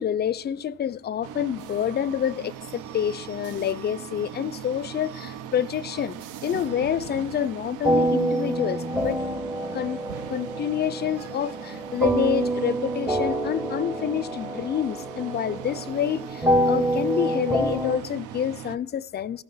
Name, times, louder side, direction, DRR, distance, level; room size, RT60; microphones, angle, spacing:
voice 1, 0.0-6.2 6.4-9.2 9.7-10.0 10.3-19.4, left 9 dB, 35° left, 0.4 m, -28 dB
sound 1, 1.2-18.8, right 10 dB, 85° right, 0.5 m, -39 dB
sound 2, 7.8-18.0, right 1 dB, 5° right, 0.6 m, -27 dB
14.0 x 5.6 x 5.4 m
cardioid pair, 90°, 30 cm